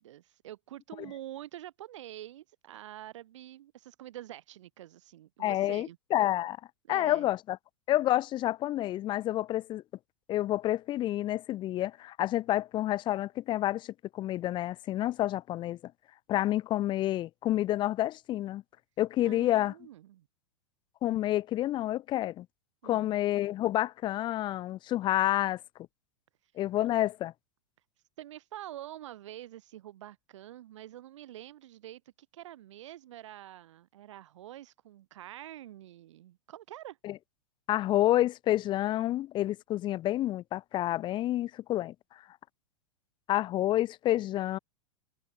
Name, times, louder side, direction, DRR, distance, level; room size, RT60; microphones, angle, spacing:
voice 1, 0.0-6.0 6.9-7.3 19.2-20.3 22.8-23.1 28.2-37.0, right 13 dB, 70° right, 5.3 m, -46 dB
voice 2, 5.4-6.6 6.9-7.6 7.9-9.8 10.3-15.8 16.3-18.6 19.0-19.7 21.0-22.5 22.8-25.6 26.6-27.3 37.0-37.1 37.7-41.9 43.3-44.6, left 14 dB, 30° left, 0.5 m, -29 dB
hypercardioid pair, 100°, 16 cm